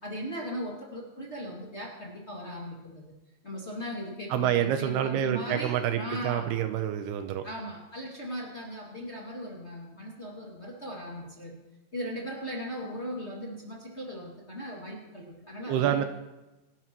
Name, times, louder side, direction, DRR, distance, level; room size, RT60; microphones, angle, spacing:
voice 1, 0.0-3.1 3.4-6.6 7.4-11.5 11.9-16.0, equal, 25° left, -3 dB, 1.4 m, -38 dB
voice 2, 4.3-7.4 15.7-16.0, right 10 dB, 80° right, 8 dB, 2.6 m, -27 dB
27.0 x 12.0 x 3.1 m, 1.0 s
omnidirectional pair, 5.0 m